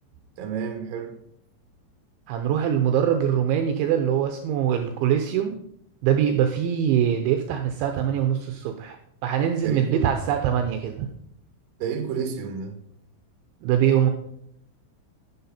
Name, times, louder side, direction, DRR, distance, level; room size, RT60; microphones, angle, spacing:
voice 1, 0.4-1.2 9.6-10.1 11.8-12.8, right 6 dB, 60° right, 2.5 m, -30 dB
voice 2, 2.3-5.6 6.0-9.0 9.2-11.1 13.6-14.1, right 9 dB, 75° right, 3.0 m, -23 dB
11.0 x 11.0 x 4.3 m
omnidirectional pair, 5.9 m